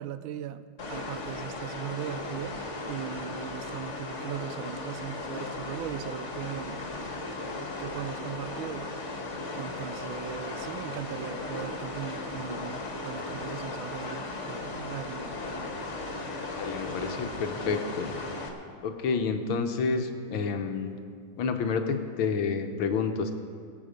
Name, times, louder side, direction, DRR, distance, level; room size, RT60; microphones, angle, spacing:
voice 1, 0.0-2.6 2.9-6.8 7.8-8.9 9.5-15.3, right 10 dB, 80° right, 12 dB, 1.4 m, -38 dB
sound 1, 0.8-18.5, left 2 dB, 40° left, 1.7 m, -36 dB
voice 2, 16.6-18.1 18.8-21.0 21.4-23.3, left 5 dB, 80° left, 6 dB, 1.8 m, -29 dB
22.0 x 8.5 x 5.1 m, 2.2 s
omnidirectional pair, 2.2 m